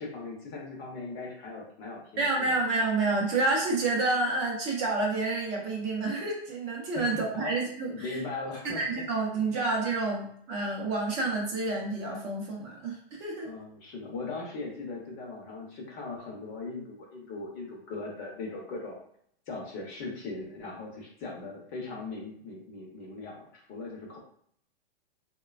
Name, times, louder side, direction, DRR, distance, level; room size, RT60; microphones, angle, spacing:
voice 1, 0.0-2.6 6.9-7.5 7.9-9.6 13.4-19.0 19.5-24.2, left 3 dB, 30° left, -1 dB, 0.7 m, -39 dB
voice 2, 2.2-8.1 8.7-13.5, right 2 dB, 30° right, -1 dB, 0.5 m, -29 dB
3.1 x 2.2 x 2.3 m, 0.64 s
hypercardioid pair, 145°, 31 cm